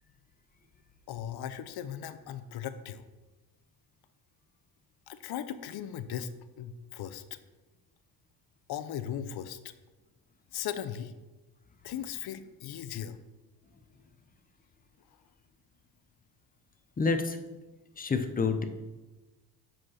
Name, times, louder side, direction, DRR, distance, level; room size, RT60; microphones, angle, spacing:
voice 1, 1.1-3.0 5.1-6.3 6.6-7.2 8.7-9.6 10.5-11.1 11.8-13.2, left 10 dB, 60° left, 12 dB, 0.7 m, -37 dB
voice 2, 17.0-17.4 18.0-18.6, left 4 dB, 20° left, 7 dB, 0.7 m, -28 dB
5.8 x 5.1 x 6.4 m, 1.2 s
cardioid pair, 110°, 43 cm